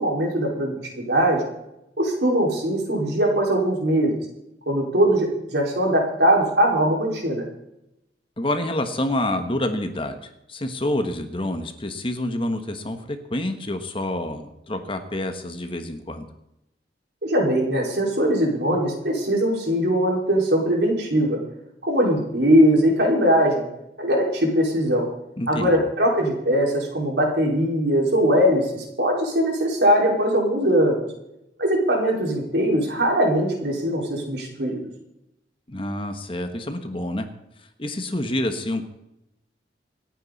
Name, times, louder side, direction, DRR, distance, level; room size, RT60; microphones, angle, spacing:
voice 1, 0.0-1.4 2.0-4.1 4.7-7.4 17.2-21.4 21.8-23.6 24.0-25.0 25.5-31.0 31.6-34.8, equal, 65° right, -1 dB, 5.0 m, -21 dB
voice 2, 8.4-16.3 25.4-25.8 35.7-37.3 37.6-38.8, left 1 dB, 30° left, 7 dB, 1.3 m, -28 dB
27.0 x 9.1 x 4.2 m, 0.85 s
head